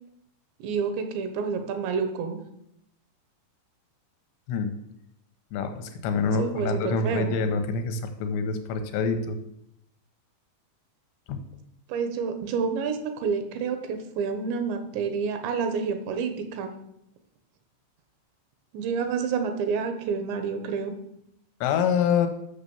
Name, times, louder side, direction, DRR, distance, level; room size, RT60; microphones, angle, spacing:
voice 1, 0.6-2.4 6.4-7.4 11.9-16.7 18.7-20.9, right 5 dB, 75° right, 7 dB, 3.2 m, -29 dB
voice 2, 5.5-9.4 11.3-11.4 21.6-22.3, left 5 dB, 75° left, 7 dB, 3.2 m, -26 dB
9.6 x 6.8 x 7.0 m, 0.78 s
omnidirectional pair, 5.3 m